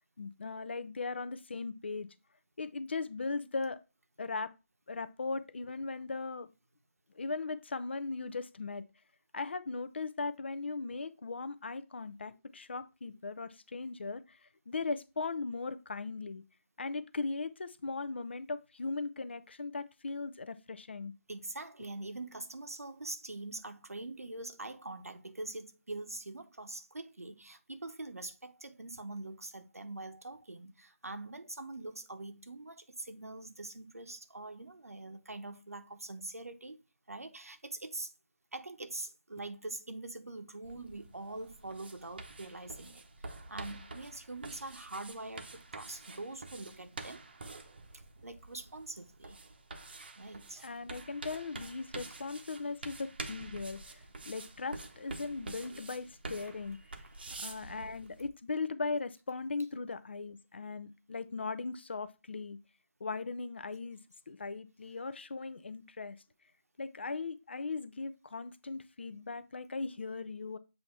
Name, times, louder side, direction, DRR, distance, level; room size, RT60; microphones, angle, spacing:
voice 1, 0.2-2.1 2.6-3.8 4.2-4.5 4.9-6.5 7.1-8.8 9.3-16.4 16.8-21.1 50.6-56.8 57.4-62.6 63.0-64.0 64.3-66.2 66.8-70.6, left 4 dB, 50° left, 0.5 m, -38 dB
voice 2, 21.3-36.8 37.1-38.1 38.5-47.2 48.2-49.4 50.2-50.8 57.2-57.5, right 2 dB, 90° right, 1.0 m, -44 dB
sound 1, 40.6-58.3, right 3 dB, 45° right, 0.8 m, -47 dB
7.6 x 2.8 x 4.5 m
figure-of-eight pair, 165°, 8 cm